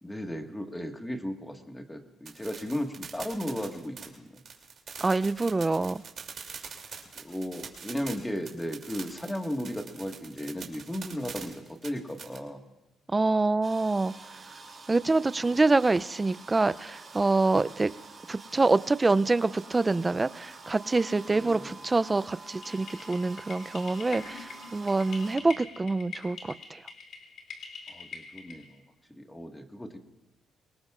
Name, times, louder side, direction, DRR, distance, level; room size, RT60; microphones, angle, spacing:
voice 1, 0.0-4.4 7.2-12.6 21.3-21.7 25.3-25.5 27.9-28.8 29.2-30.0, equal, 10° left, 4 dB, 1.7 m, -35 dB
sound 1, 2.3-12.4, right 6 dB, 55° right, 2.9 m, -43 dB
voice 2, 5.0-6.0 13.1-14.1 14.9-17.9 18.3-26.8, right 3 dB, 20° right, 15 dB, 0.5 m, -26 dB
sound 2, 13.6-25.4, right 3 dB, 35° right, 3.4 m, -47 dB
sound 3, 22.6-28.8, left 5 dB, 65° left, 2.8 m, -45 dB
24.5 x 19.5 x 2.5 m, 1.1 s
cardioid pair, 90°, 0 cm